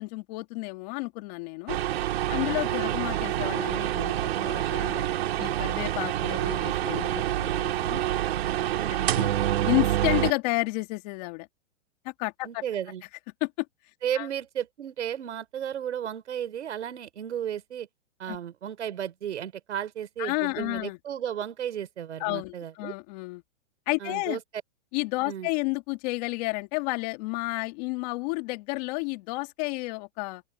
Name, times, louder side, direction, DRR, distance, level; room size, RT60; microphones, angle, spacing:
voice 1, 0.0-1.8 2.3-5.1 5.4-8.0 9.1-9.3 9.6-11.5 12.0-12.6 13.4-13.7 14.1-14.3 18.3-18.4 20.2-21.0 22.2-23.4 23.9-24.4 24.9-30.4, left 26 dB, 35° left, 2.5 m, -31 dB
sound 1, 1.7-10.3, right 12 dB, 60° right, 4.1 m, -27 dB
voice 2, 8.7-9.2 12.4-13.0 14.0-17.9 18.2-22.9 24.0-24.4 25.3-25.5, right 9 dB, 80° right, 5.4 m, -34 dB
open air
hypercardioid pair, 160°, 35 cm